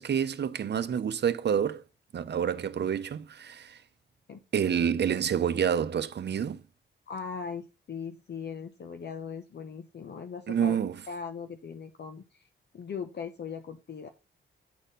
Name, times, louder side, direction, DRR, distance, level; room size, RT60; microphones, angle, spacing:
voice 1, 0.0-1.8 2.1-3.8 4.5-6.6 10.5-11.0, right 8 dB, 55° right, 0.7 m, -28 dB
voice 2, 7.1-10.8 11.1-12.5 12.7-14.1, left 6 dB, 55° left, 0.8 m, -39 dB
9.4 x 4.2 x 5.1 m
wide cardioid pair, 115°, 21 cm